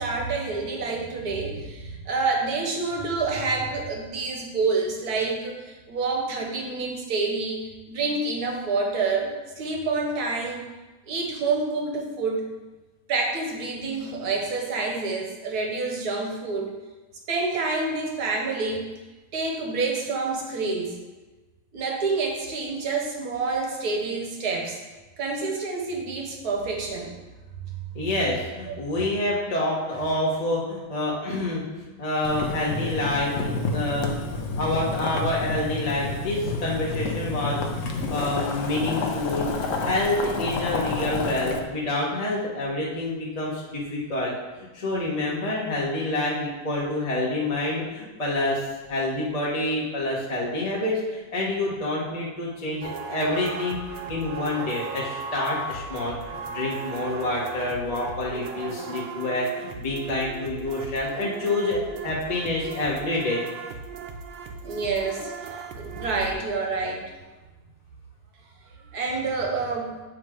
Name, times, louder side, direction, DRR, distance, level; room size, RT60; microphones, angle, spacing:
voice 1, 0.0-7.6 7.9-10.7 11.1-12.5 13.1-16.8 17.3-18.9 19.3-21.0 21.7-24.8 25.2-27.2 64.6-67.0 68.9-69.9, right 3 dB, 55° right, 0 dB, 1.3 m, -28 dB
voice 2, 27.9-31.6 32.0-34.1 34.5-44.3 44.6-63.4, left 1 dB, 25° left, -5 dB, 0.8 m, -27 dB
Boiling, 32.2-41.6, left 3 dB, 80° left, 0.7 m, -29 dB
sound 1, 52.8-66.3, right 4 dB, 70° right, 1.3 m, -37 dB
7.6 x 3.3 x 4.9 m, 1.2 s
omnidirectional pair, 2.2 m